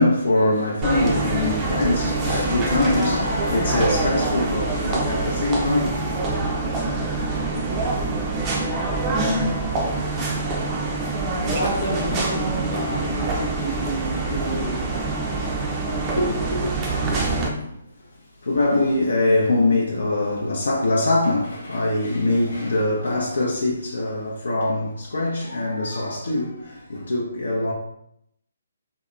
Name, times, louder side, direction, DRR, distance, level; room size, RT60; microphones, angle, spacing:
voice 1, 0.0-6.5 16.2-17.2 18.4-27.7, left 2 dB, 75° left, 0.5 m, -23 dB
sound 1, 0.8-17.5, right 3 dB, 20° right, 0.4 m, -25 dB
voice 2, 11.4-15.3 21.4-21.7, equal, 50° left, 0.8 m, -30 dB
2.8 x 2.1 x 2.4 m
hypercardioid pair, 145°, 0 cm